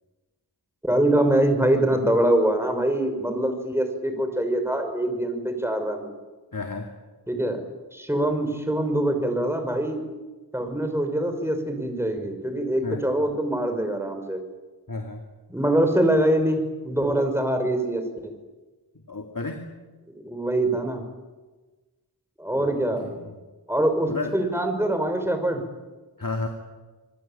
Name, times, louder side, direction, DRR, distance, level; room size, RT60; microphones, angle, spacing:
voice 1, 0.8-6.1 7.3-7.6 7.9-10.0 10.5-14.4 15.5-18.3 20.2-21.0 22.4-23.0 23.7-25.6, right 1 dB, 5° right, 6 dB, 5.8 m, -24 dB
voice 2, 6.5-6.9 12.8-13.0 14.9-15.3 19.1-19.7 22.6-22.7 23.0-23.3 24.1-24.4 26.2-26.5, left 3 dB, 55° left, 3 dB, 2.7 m, -32 dB
27.0 x 22.5 x 8.9 m, 1.2 s
wide cardioid pair, 45°, 39 cm